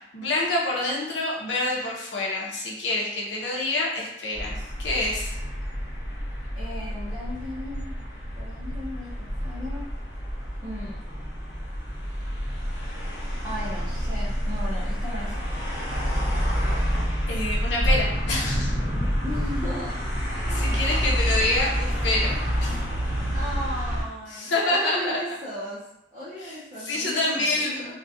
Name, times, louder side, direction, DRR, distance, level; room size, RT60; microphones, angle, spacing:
voice 1, 0.1-4.5 4.8-5.3 17.3-18.7 20.5-22.8 24.3-25.2 26.4-27.9, left 2 dB, 90° left, -3 dB, 0.6 m, -27 dB
sound 1, 4.3-24.0, equal, 45° left, 0.9 m, -28 dB
voice 2, 6.5-8.1 8.4-9.8 10.6-11.0 13.4-15.4 19.2-20.0 20.5-20.7 21.4-21.5 23.3-25.8 26.1-27.9, left 1 dB, 20° right, -10 dB, 0.5 m, -36 dB
2.3 x 2.1 x 2.6 m, 0.87 s
head